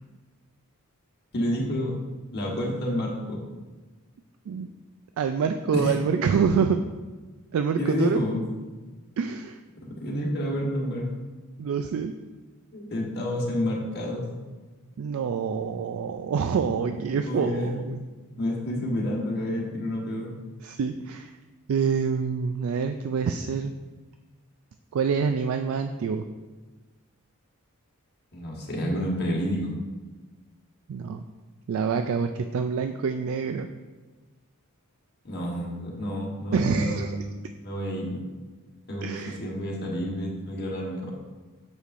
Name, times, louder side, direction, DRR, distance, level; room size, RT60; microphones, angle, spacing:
voice 1, 1.3-2.0 2.3-3.4 5.7-5.9 7.8-8.4 9.8-11.0 12.7-14.2 17.3-17.8 18.4-20.3 28.3-29.7 35.2-38.2 38.9-41.1, left 1 dB, 50° left, -3 dB, 1.4 m, -29 dB
voice 2, 5.2-6.8 7.5-8.2 9.2-9.6 11.6-12.2 15.0-18.0 20.6-21.3 21.7-23.7 24.9-26.2 30.9-31.2 31.7-33.7 36.5-37.2 39.0-39.4, right 6 dB, 65° right, 7 dB, 0.3 m, -26 dB
8.2 x 6.4 x 2.5 m, 1.3 s
head